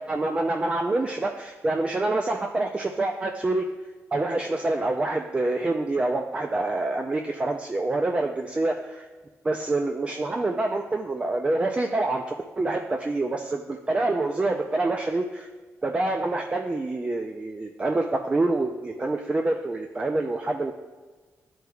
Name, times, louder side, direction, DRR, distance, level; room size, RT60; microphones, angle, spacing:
voice 1, 0.0-3.6 4.1-9.1 9.4-15.5 15.8-20.7, right 2 dB, 20° right, 3 dB, 0.4 m, -26 dB
11.0 x 4.6 x 2.3 m, 1.3 s
cardioid pair, 100°, 6 cm